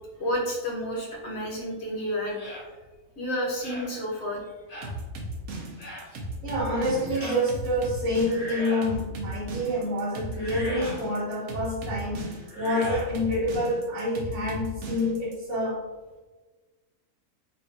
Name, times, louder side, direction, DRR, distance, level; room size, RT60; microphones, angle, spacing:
voice 1, 0.2-2.6 3.2-4.4, equal, 55° left, -3 dB, 1.0 m, -30 dB
sound 1, 2.4-2.7 3.6-3.9 4.7-4.9 5.8-6.1 7.1-7.4 8.2-9.0 10.3-11.0 12.5-13.1, equal, 30° left, 1.0 m, -38 dB
sound 2, 4.8-15.4, right 2 dB, 80° right, 1.1 m, -36 dB
voice 2, 6.1-15.8, left 1 dB, 60° right, -7 dB, 1.1 m, -28 dB
3.3 x 2.6 x 2.5 m, 1.2 s
omnidirectional pair, 1.5 m